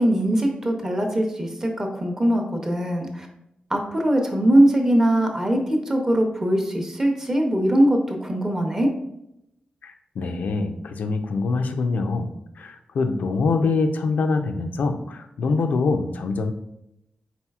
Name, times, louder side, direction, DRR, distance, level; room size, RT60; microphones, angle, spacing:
voice 1, 0.0-3.3 3.7-8.9, right 1 dB, 20° right, 3 dB, 0.6 m, -21 dB
voice 2, 9.8-16.5, left 3 dB, 85° left, 6 dB, 0.4 m, -24 dB
4.3 x 3.9 x 2.3 m, 0.83 s
wide cardioid pair, 140°, 3 cm